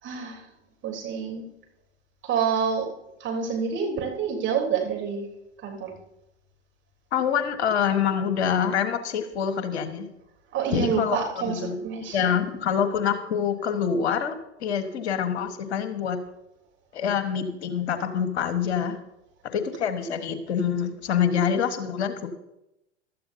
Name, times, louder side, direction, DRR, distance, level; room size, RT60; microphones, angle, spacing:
voice 1, 0.0-0.5 0.8-1.4 2.2-2.9 3.2-5.3 5.6-5.9 10.5-12.4, right 6 dB, 35° right, 0 dB, 3.7 m, -28 dB
voice 2, 7.1-10.1 10.7-11.8 12.1-16.2 16.9-19.0 19.5-22.3, left 7 dB, 65° left, 8 dB, 1.5 m, -26 dB
15.5 x 13.0 x 2.8 m, 0.86 s
hypercardioid pair, 95°, 35 cm